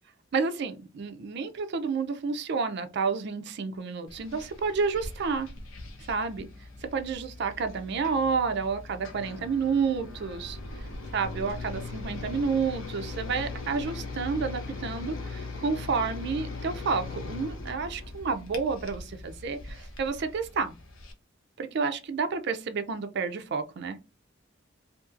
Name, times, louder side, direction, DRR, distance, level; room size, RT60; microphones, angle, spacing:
voice 1, 0.3-5.5 6.1-6.5 6.8-20.8 21.6-24.0, right 5 dB, 60° right, 0.4 m, -30 dB
sound 1, 4.1-21.1, left 3 dB, 90° left, 0.6 m, -40 dB
2.8 x 2.6 x 2.4 m
head